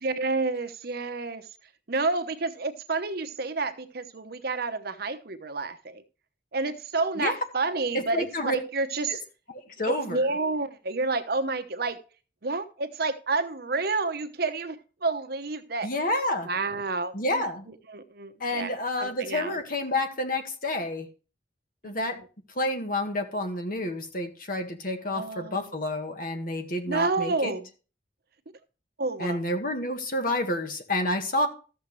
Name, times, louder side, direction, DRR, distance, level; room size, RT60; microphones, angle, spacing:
voice 1, 0.0-1.5 1.9-6.0 6.5-9.2 10.0-12.0 12.4-15.9 16.4-19.6 21.8-22.3 25.0-25.7 26.9-27.7 29.0-29.4, right 3 dB, 60° right, 1.0 m, -30 dB
voice 2, 8.1-8.6 9.8-10.2 15.8-16.5 17.1-17.7 18.4-21.1 21.8-22.2 22.5-27.5 29.2-31.5, left 1 dB, 50° left, 1.8 m, -29 dB
13.5 x 7.2 x 3.2 m
head